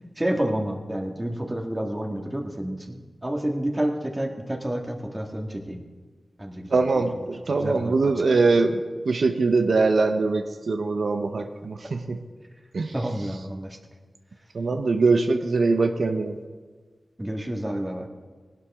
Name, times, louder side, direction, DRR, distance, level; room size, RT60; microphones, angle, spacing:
voice 1, 0.2-5.8 6.4-7.3 7.5-8.6 12.9-13.8 17.2-18.1, right 1 dB, 20° right, 2 dB, 1.7 m, -30 dB
voice 2, 6.7-12.2 12.7-12.9 14.5-16.4, right 3 dB, 75° right, 6 dB, 0.7 m, -22 dB
19.0 x 12.0 x 3.6 m, 1.5 s
wide cardioid pair, 80°, 0 cm